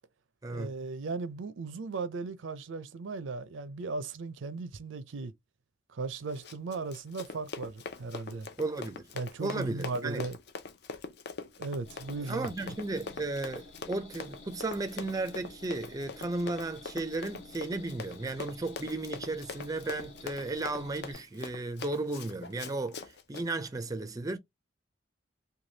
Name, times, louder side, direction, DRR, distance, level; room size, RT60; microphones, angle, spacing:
voice 1, 0.5-5.3 5.9-8.5 9.2-10.4 11.6-12.7, right 3 dB, 75° right, 0.5 m, -37 dB
Run, 6.3-23.5, left 4 dB, 60° left, 0.6 m, -43 dB
voice 2, 8.6-9.1 9.4-10.2 12.3-24.4, right 2 dB, 20° right, 0.4 m, -34 dB
sound 1, 11.8-21.1, left 2 dB, 85° left, 1.1 m, -51 dB
3.2 x 2.3 x 2.7 m
head